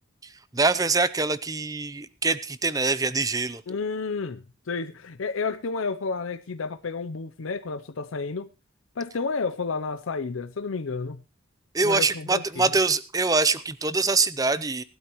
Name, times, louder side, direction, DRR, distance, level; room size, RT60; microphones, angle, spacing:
voice 1, 0.5-3.6 11.7-14.8, right 3 dB, 15° right, 0.6 m, -24 dB
voice 2, 3.7-8.5 9.0-11.2 11.8-12.8, left 4 dB, 75° left, 0.6 m, -31 dB
18.5 x 12.0 x 3.1 m
head